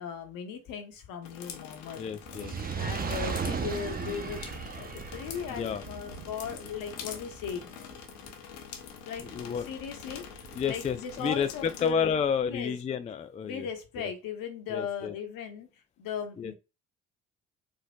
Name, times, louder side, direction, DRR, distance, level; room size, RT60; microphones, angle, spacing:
voice 1, 0.0-2.0 2.8-4.4 4.7-7.7 9.0-12.1 12.4-12.7 13.4-15.7 16.0-16.5, left 7 dB, 60° left, 1.0 m, -38 dB
sound 1, 1.2-11.9, left 8 dB, 80° left, 0.7 m, -45 dB
voice 2, 2.0-2.5 5.5-5.8 9.2-9.7 10.5-13.7 14.0-14.1 14.7-15.1 16.4-16.5, left 7 dB, 20° left, 0.3 m, -30 dB
Fire, 2.2-8.7 9.3-9.4, right 6 dB, 25° right, 0.6 m, -37 dB
sound 2, 3.8-12.6, right 6 dB, 75° right, 0.5 m, -54 dB
4.4 x 2.4 x 2.2 m
hypercardioid pair, 50°, 38 cm